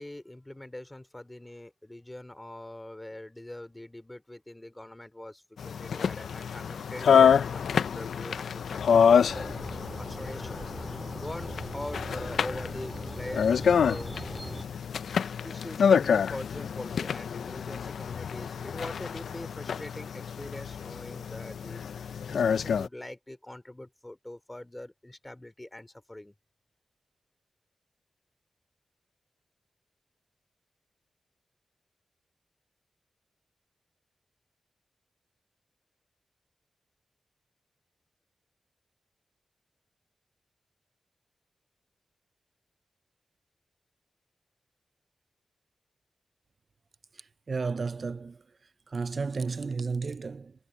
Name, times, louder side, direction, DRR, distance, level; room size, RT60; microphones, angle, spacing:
voice 1, 0.0-10.6 11.2-14.1 15.4-26.3, left 1 dB, 15° left, 3.2 m, -43 dB
sound 1, 5.6-22.9, left 7 dB, 90° left, 0.4 m, -27 dB
sound 2, 9.2-14.6, right 1 dB, 15° right, 2.5 m, -40 dB
voice 2, 47.1-48.4 48.9-50.5, right 4 dB, 55° right, 0.5 m, -33 dB
cardioid pair, 65°, 0 cm